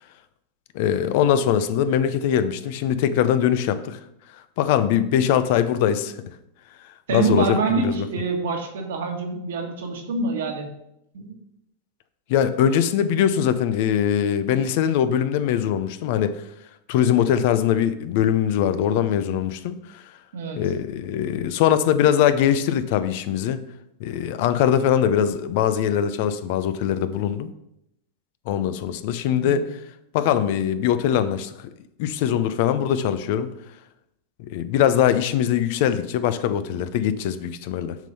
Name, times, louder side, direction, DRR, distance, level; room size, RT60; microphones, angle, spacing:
voice 1, 0.7-4.0 4.6-6.1 7.1-8.1 12.3-16.4 16.9-20.0 20.6-23.6 24.0-27.5 28.5-29.7 30.1-31.5 32.0-33.5 34.5-38.0, left 9 dB, 65° left, 12 dB, 0.6 m, -22 dB
voice 2, 7.1-10.7 11.1-11.4 20.3-20.6 29.4-29.7, right 4 dB, 80° right, 3 dB, 1.4 m, -26 dB
7.3 x 3.9 x 5.3 m, 0.81 s
hypercardioid pair, 105°, 0 cm